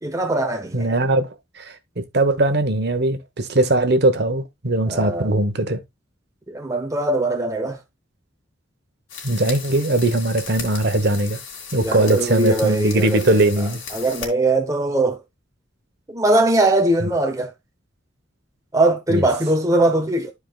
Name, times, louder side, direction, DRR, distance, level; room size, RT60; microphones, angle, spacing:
voice 1, 0.0-0.9 4.9-5.3 6.5-7.8 11.8-13.2 13.9-15.2 16.1-17.5 18.7-20.3, right 2 dB, 15° right, 0.9 m, -20 dB
voice 2, 0.7-5.8 9.2-11.4 11.7-13.8 19.1-19.2, right 2 dB, 55° right, 1.1 m, -20 dB
sound 1, 9.1-14.3, left 6 dB, 70° left, 2.6 m, -36 dB
12.5 x 4.8 x 2.4 m
head